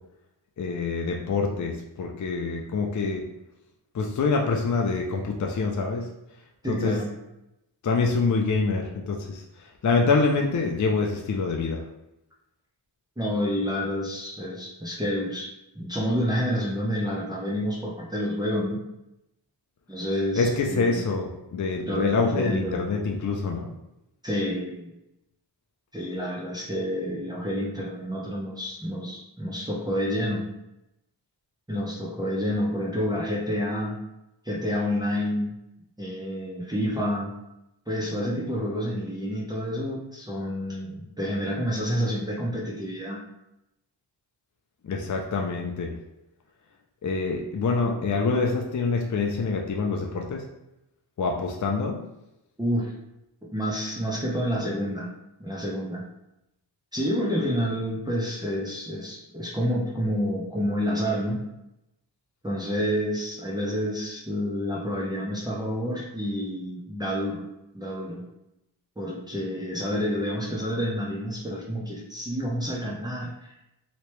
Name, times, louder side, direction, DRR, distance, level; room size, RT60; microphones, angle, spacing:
voice 1, 0.6-3.2 3.9-6.1 6.7-7.0 7.8-11.8 20.4-23.7 44.8-45.9 47.0-50.5 51.2-52.0, left 4 dB, 40° left, 1 dB, 0.6 m, -26 dB
voice 2, 6.6-7.1 13.2-15.5 15.7-18.8 19.9-21.0 21.9-22.8 24.2-24.9 25.9-30.5 31.7-34.0 34.4-35.5 36.0-37.3 37.9-43.2 52.6-52.9 53.5-55.1 55.4-56.1 56.9-61.4 62.4-67.5 67.7-68.3 69.0-73.5, equal, 10° right, -4 dB, 0.8 m, -29 dB
3.0 x 2.8 x 3.2 m, 0.89 s
cardioid pair, 50°, 46 cm